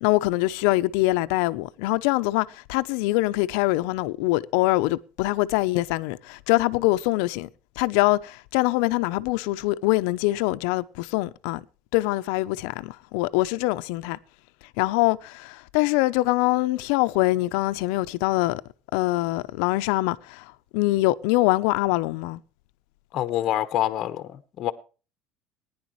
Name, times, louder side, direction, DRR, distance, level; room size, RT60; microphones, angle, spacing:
voice 1, 0.0-7.5 7.8-11.6 11.9-14.2 14.8-18.6 18.9-22.4, left 19 dB, 75° left, 0.7 m, -24 dB
voice 2, 23.1-24.7, left 12 dB, 40° left, 0.9 m, -26 dB
19.0 x 10.5 x 3.1 m
cardioid pair, 155°, 0 cm